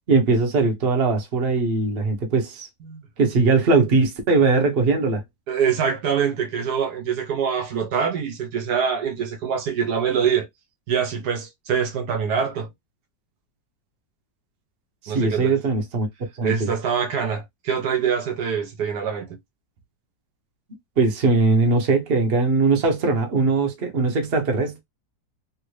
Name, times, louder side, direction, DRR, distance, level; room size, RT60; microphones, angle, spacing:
voice 1, 0.1-2.7 3.2-5.2 15.0-16.1 16.4-16.7 21.0-24.8, right 3 dB, 45° right, 0.9 m, -20 dB
voice 2, 5.5-10.5 10.9-12.7 15.1-15.5 16.4-19.4, right 7 dB, 70° right, 1.3 m, -24 dB
3.2 x 2.5 x 3.1 m
omnidirectional pair, 1.9 m